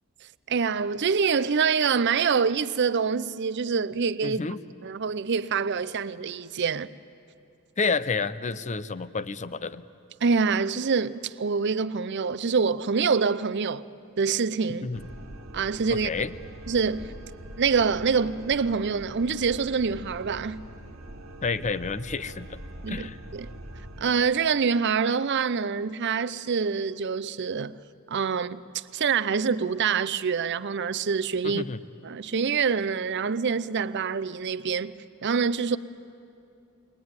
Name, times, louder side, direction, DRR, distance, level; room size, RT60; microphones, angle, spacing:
voice 1, 0.5-4.4 4.8-6.9 10.2-13.8 14.2-14.9 15.5-16.1 16.7-17.1 17.6-20.6 22.8-23.1 23.3-23.5 24.0-27.7 28.1-31.6 32.0-34.9 35.2-35.8, right 5 dB, 55° right, 0.6 m, -25 dB
voice 2, 4.2-4.6 7.8-9.8 14.8-15.0 15.9-16.3 21.4-22.6 22.9-23.2 31.4-31.8, left 4 dB, 35° left, 0.6 m, -30 dB
sound 1, 14.9-24.1, right 1 dB, 80° right, 1.4 m, -43 dB
22.5 x 21.0 x 9.5 m
head